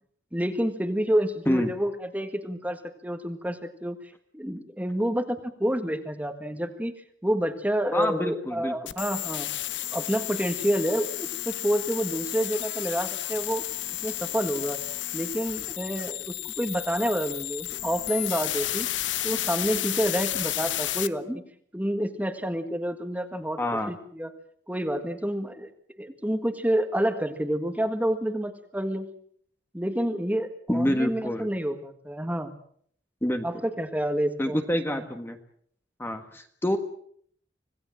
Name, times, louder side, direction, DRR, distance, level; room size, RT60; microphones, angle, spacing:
voice 1, 0.3-4.0 4.3-6.9 7.2-9.5 9.9-13.6 14.0-14.8 15.1-18.9 19.2-21.4 21.7-23.6 23.9-24.3 24.7-25.7 26.0-29.1 29.7-32.6 33.4-34.6 34.9-35.1, equal, 10° right, 7 dB, 1.7 m, -28 dB
voice 2, 7.9-8.8 23.6-23.9 30.7-31.5 33.2-33.5 34.4-35.4 36.0-36.8, equal, 10° left, 6 dB, 1.6 m, -27 dB
sound 1, 8.9-21.1, left 13 dB, 85° left, 0.9 m, -32 dB
26.0 x 17.5 x 7.6 m, 0.63 s
head